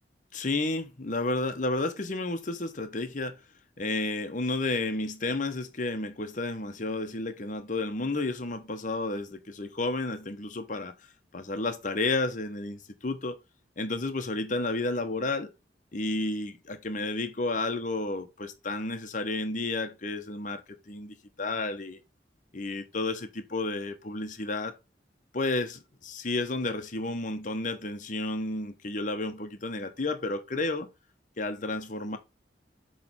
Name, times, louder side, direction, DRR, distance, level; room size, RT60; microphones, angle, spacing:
voice 1, 0.3-3.4 3.8-10.9 11.3-13.4 13.8-15.5 15.9-20.6 20.9-22.0 22.5-24.7 25.3-30.9 31.4-32.2, left 2 dB, 45° left, 1.0 m, -31 dB
7.7 x 3.3 x 4.1 m
head